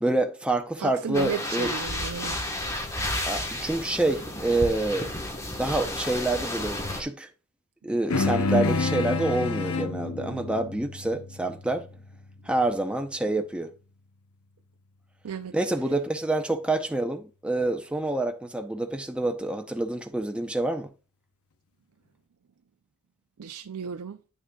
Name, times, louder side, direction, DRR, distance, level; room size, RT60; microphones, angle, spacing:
voice 1, 0.0-1.7 3.2-5.1 5.6-7.3 7.8-11.9 12.5-13.7 15.5-20.9, right 2 dB, 5° right, 0.6 m, -27 dB
voice 2, 0.8-2.4 15.2-15.5 23.4-24.2, right 7 dB, 75° right, 0.4 m, -33 dB
sound 1, 1.1-7.0, left 1 dB, 15° left, 1.2 m, -32 dB
sound 2, 8.1-12.8, left 3 dB, 80° left, 0.8 m, -29 dB
9.3 x 6.4 x 2.3 m
head